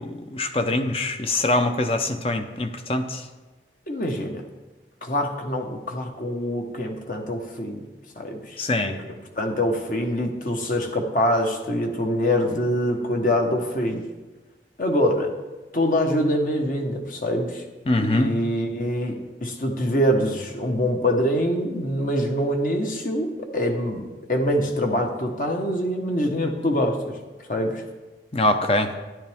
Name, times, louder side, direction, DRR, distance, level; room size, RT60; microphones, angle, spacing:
voice 1, 0.0-3.3 8.6-9.0 17.9-18.3 28.3-28.9, left 2 dB, 30° left, 7 dB, 0.7 m, -23 dB
voice 2, 3.9-4.4 5.0-7.8 8.2-14.0 14.8-15.3 15.7-17.6 18.0-27.2 27.5-27.8, equal, 50° left, 3 dB, 1.2 m, -25 dB
12.5 x 10.5 x 3.6 m, 1.2 s
head